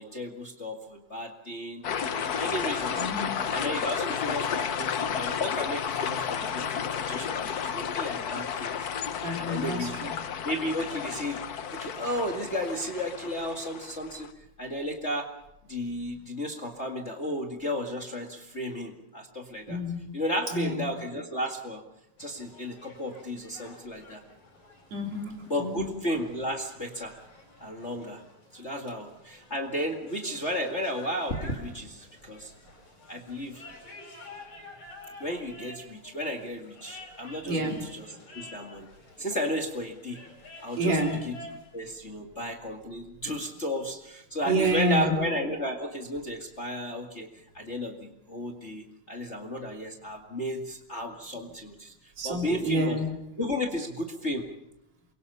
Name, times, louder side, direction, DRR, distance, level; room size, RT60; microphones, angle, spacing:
voice 1, 0.0-3.1 3.5-8.9 9.4-10.0 10.4-11.4 11.7-14.3 14.6-15.3 15.7-19.8 20.1-21.8 22.2-24.2 25.5-27.1 27.6-28.2 28.5-32.5 33.1-33.6 35.2-38.1 38.3-38.9 39.2-40.2 40.6-41.3 41.7-47.3 47.5-51.9 52.2-53.0 53.4-54.5, equal, 25° left, 2.1 m, -33 dB
sound 1, 1.8-14.3, left 7 dB, 75° left, 0.8 m, -32 dB
voice 2, 3.0-3.5 9.2-10.1 19.7-20.2 20.5-20.9 24.9-26.0 37.5-37.9 40.8-41.2 44.4-45.2 52.2-53.2, right 1 dB, 65° right, 4.8 m, -29 dB
sound 2, 22.2-41.7, left 2 dB, 55° left, 7.4 m, -50 dB
28.5 x 23.5 x 5.6 m
omnidirectional pair, 3.3 m